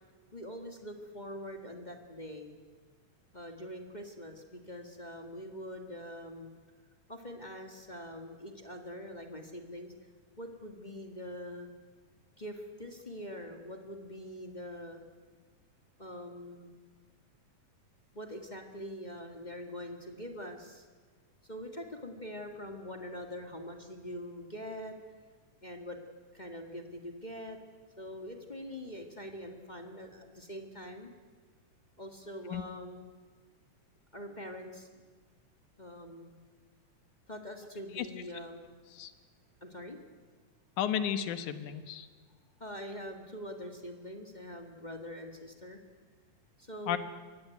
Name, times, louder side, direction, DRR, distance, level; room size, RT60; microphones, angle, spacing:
voice 1, 0.3-2.6 3.3-6.5 7.1-9.9 10.4-11.7 12.4-15.0 16.0-16.7 18.1-20.9 21.4-25.0 25.6-26.0 26.3-27.6 28.0-31.1 32.0-33.1 34.1-34.9 35.8-36.4 37.3-38.7 39.6-40.0 42.6-45.8 46.6-47.0, equal, 25° left, 3 dB, 1.1 m, -44 dB
voice 2, 40.8-42.1 46.9-47.0, left 9 dB, 75° left, 10 dB, 2.6 m, -33 dB
23.5 x 18.0 x 9.3 m, 1.5 s
omnidirectional pair, 3.6 m